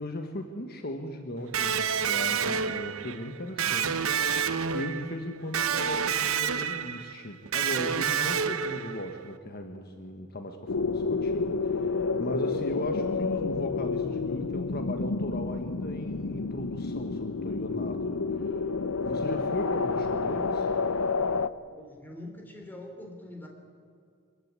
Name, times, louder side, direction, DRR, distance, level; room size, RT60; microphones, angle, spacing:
voice 1, 0.0-18.7 19.0-20.8, left 1 dB, 45° left, 5 dB, 1.4 m, -37 dB
Electric guitar, 1.5-9.2, right 7 dB, 70° right, 1.0 m, -29 dB
sound 1, 10.7-21.5, left 4 dB, 80° left, 0.7 m, -29 dB
voice 2, 21.7-23.5, left 1 dB, 10° left, 2 dB, 3.6 m, -44 dB
24.5 x 15.0 x 9.7 m, 2.3 s
head